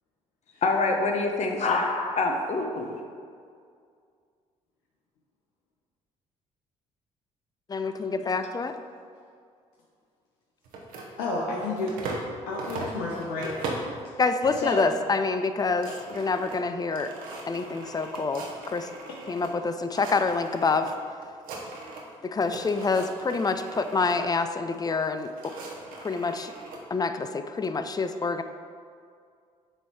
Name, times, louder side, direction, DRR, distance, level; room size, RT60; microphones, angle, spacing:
voice 1, 0.6-3.0, left 3 dB, 50° left, 2 dB, 0.9 m, -26 dB
voice 2, 7.7-8.7 14.2-17.1 17.5-18.9 19.3-20.9 22.2-25.5 26.0-26.5 26.9-28.4, left 4 dB, 25° left, 9 dB, 0.4 m, -27 dB
sound 1, 10.6-12.3 12.6-14.0 14.4-14.9 15.2-15.3 15.5-19.5 19.8-20.9 21.2-22.1 22.4-24.2 25.0-26.8, right 3 dB, 75° right, 1.0 m, -39 dB
voice 3, 11.2-12.0 12.5-13.7 14.5-14.9 19.1-19.2, left 2 dB, 85° left, -4 dB, 0.8 m, -31 dB
7.9 x 3.2 x 4.2 m, 2.2 s
supercardioid pair, 65°, 15 cm